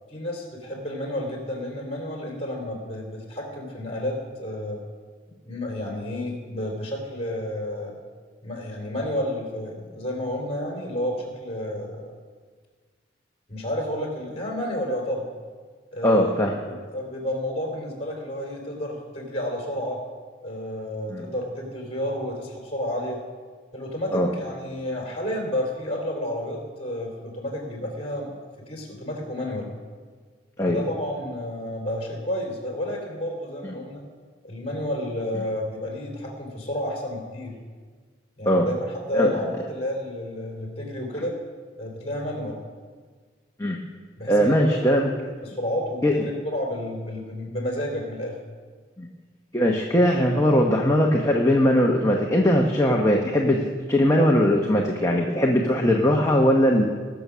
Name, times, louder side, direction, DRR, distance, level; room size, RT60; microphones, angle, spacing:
voice 1, 0.1-4.8 5.4-8.0 8.4-12.1 13.5-15.3 15.9-16.3 16.7-20.0 20.4-23.2 23.7-28.3 28.7-29.7 30.6-34.0 34.4-37.5 38.4-38.7 39.1-41.3 41.8-42.6 44.2-44.6 45.4-48.4, left 1 dB, 30° left, 0 dB, 3.3 m, -31 dB
voice 2, 16.0-16.5 21.1-21.2 24.1-24.3 30.6-30.8 38.5-38.7 39.1-39.3 43.6-43.8 44.3-45.0 46.0-46.1 49.0-49.1 49.5-56.9, equal, 15° left, 0 dB, 0.9 m, -20 dB
20.5 x 7.0 x 6.1 m, 1.5 s
head